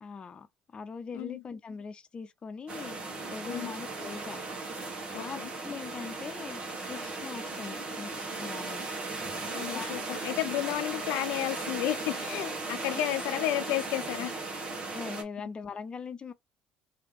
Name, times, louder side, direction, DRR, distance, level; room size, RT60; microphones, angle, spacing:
voice 1, 0.0-3.0 3.3-4.4 5.1-8.8 9.7-10.3 12.8-13.0 14.9-16.3, left 5 dB, 35° left, 0.8 m, -41 dB
sound 1, 2.7-15.2, right 3 dB, 40° right, 1.5 m, -37 dB
voice 2, 5.1-5.5 9.5-14.3, left 14 dB, 80° left, 0.5 m, -32 dB
3.3 x 2.9 x 3.3 m
supercardioid pair, 80°, 3 cm